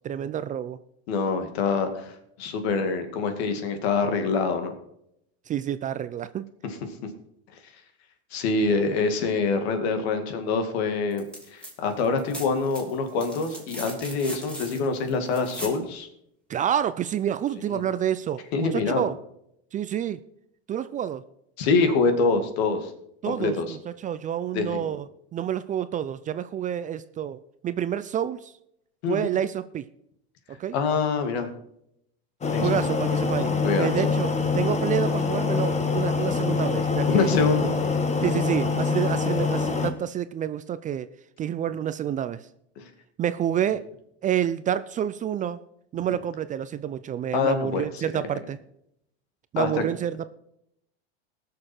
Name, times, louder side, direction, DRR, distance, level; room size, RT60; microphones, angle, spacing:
voice 1, 0.0-0.8 5.5-6.5 16.5-18.4 18.7-19.1 19.7-20.2 20.7-21.2 23.2-25.1 25.3-28.5 29.1-29.9 30.6-30.8 32.6-37.5 38.2-41.1 41.4-42.4 43.2-43.9 44.2-45.6 45.9-48.6 49.5-50.3, right 10 dB, 25° right, 13 dB, 0.4 m, -28 dB
voice 2, 1.1-2.1 2.4-4.7 8.3-11.3 11.5-16.1 17.7-17.8 18.5-19.1 21.6-22.9 23.3-23.8 24.5-24.9 29.0-29.3 30.7-31.5 32.5-32.7 33.6-34.1 37.1-37.8 42.8-42.9 47.3-48.0 49.6-49.8, left 4 dB, 70° left, 7 dB, 2.2 m, -25 dB
sound 1, 11.1-11.7 12.0-15.8 17.5-17.6, equal, 5° left, 3.0 m, -40 dB
sound 2, 32.4-39.9, left 4 dB, 20° left, 1.5 m, -25 dB
19.0 x 6.6 x 4.4 m, 0.75 s
supercardioid pair, 115°, 32 cm